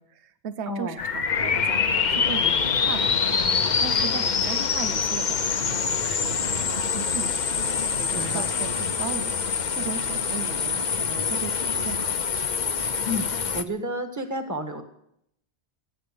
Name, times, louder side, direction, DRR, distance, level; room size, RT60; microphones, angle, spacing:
voice 1, 0.0-12.1, right 6 dB, 75° right, 12 dB, 1.1 m, -37 dB
voice 2, 0.7-1.0 8.1-8.5 13.0-14.8, equal, 15° right, 6 dB, 1.6 m, -31 dB
sound 1, 1.0-13.6, left 6 dB, 45° left, 0.9 m, -25 dB
17.5 x 9.2 x 8.5 m, 0.75 s
omnidirectional pair, 1.2 m